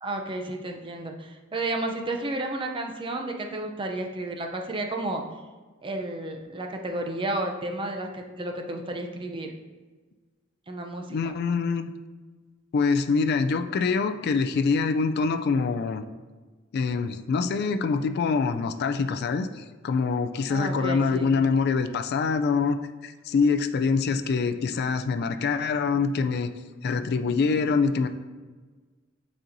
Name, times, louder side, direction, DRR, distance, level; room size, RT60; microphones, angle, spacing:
voice 1, 0.0-5.2 5.8-9.5 10.7-11.3 20.5-21.3, right 2 dB, 25° right, 3 dB, 0.5 m, -32 dB
voice 2, 11.1-11.9 12.7-16.0 16.7-22.8 23.0-26.5 26.8-28.1, left 4 dB, 55° left, 9 dB, 0.3 m, -25 dB
8.9 x 4.3 x 2.6 m, 1.3 s
head